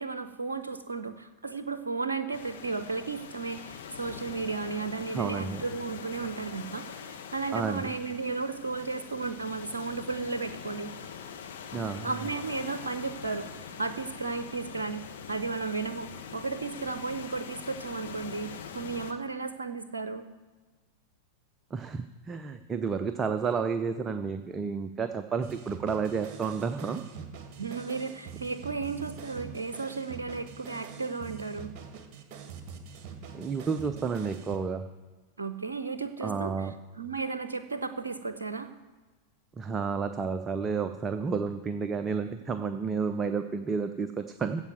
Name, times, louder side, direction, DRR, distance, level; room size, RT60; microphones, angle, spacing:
voice 1, 0.0-10.9 12.0-13.5 13.8-20.2 27.6-31.7 35.4-36.7 37.0-38.7, right 4 dB, 70° right, 11 dB, 0.6 m, -34 dB
sound 1, 2.3-19.1, left 7 dB, 60° left, 1.2 m, -43 dB
voice 2, 5.1-5.6 7.5-7.9 11.7-12.1 21.7-27.0 33.3-34.9 36.2-36.7 39.6-44.6, right 5 dB, 20° right, 9 dB, 0.6 m, -31 dB
sound 2, 25.4-34.6, right 6 dB, 35° right, 1.6 m, -45 dB
15.5 x 5.5 x 7.9 m, 1.3 s
figure-of-eight pair, 90°, 0 cm